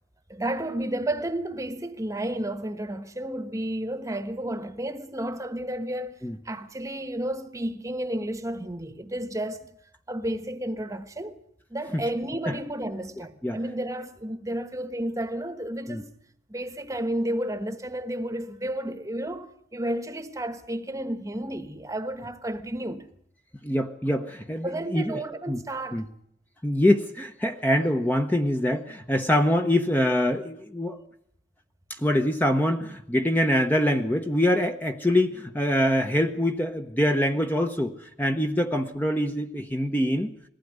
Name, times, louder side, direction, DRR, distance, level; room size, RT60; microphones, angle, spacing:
voice 1, 0.3-9.6 10.1-11.4 11.7-16.1 16.5-23.1 24.6-26.0, right 1 dB, 20° right, 1.2 m, -32 dB
voice 2, 23.6-25.2 25.5-25.6 25.9-26.1 26.6-31.0 32.0-37.9 38.2-40.3, left 1 dB, 10° left, 1.0 m, -24 dB
21.0 x 15.5 x 9.5 m
head